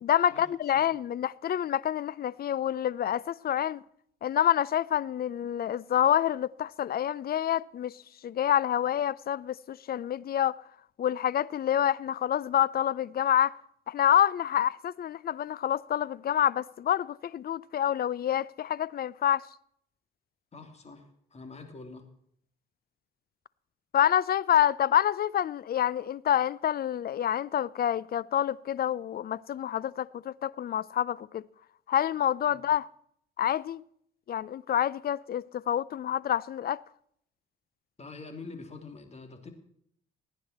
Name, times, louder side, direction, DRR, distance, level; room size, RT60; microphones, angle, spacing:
voice 1, 0.0-3.8 4.2-10.6 11.0-13.5 13.9-19.5 23.9-31.4 31.9-32.9 33.4-33.8 34.3-36.8, left 10 dB, 50° left, 0.5 m, -27 dB
voice 2, 20.5-22.1 32.5-32.6 38.0-39.5, left 3 dB, 35° left, 2.9 m, -45 dB
17.5 x 9.7 x 4.3 m
cardioid pair, 90°, 20 cm